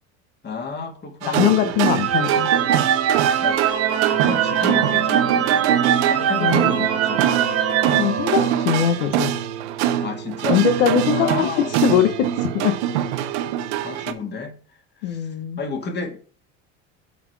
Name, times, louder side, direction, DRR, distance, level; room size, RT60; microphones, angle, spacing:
voice 1, 0.4-1.7 3.4-3.6 4.1-5.7 6.1-7.3 10.0-10.6 11.1-11.7 13.8-14.6 15.0-15.3 15.6-16.2, left 4 dB, 30° left, 2.0 m, -31 dB
sound 1, 1.2-14.1, right 11 dB, 90° right, 0.9 m, -24 dB
voice 2, 1.3-2.5 6.4-6.9 8.0-9.3 10.5-11.5 11.8-12.7 14.1-14.2 15.0-15.6, left 9 dB, 85° left, 1.0 m, -21 dB
sound 2, 1.9-8.9, right 8 dB, 45° right, 1.2 m, -22 dB
8.5 x 4.2 x 4.6 m
supercardioid pair, 110°, 34 cm